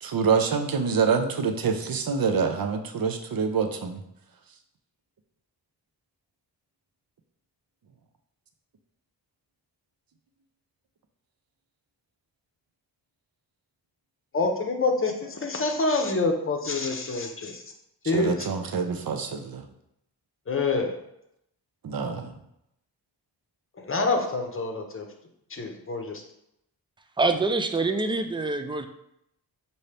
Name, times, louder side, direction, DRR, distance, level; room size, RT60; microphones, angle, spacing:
voice 1, 0.0-4.0 18.0-19.7 21.8-22.4, right 5 dB, 60° right, 5 dB, 0.6 m, -26 dB
voice 2, 14.3-17.6 18.1-18.5 20.5-20.9 23.8-25.1 25.5-26.2, left 3 dB, 30° left, 4 dB, 0.7 m, -26 dB
voice 3, 27.2-28.9, right 3 dB, 15° right, 7 dB, 0.3 m, -25 dB
5.4 x 2.7 x 3.3 m, 0.78 s
wide cardioid pair, 85°, 41 cm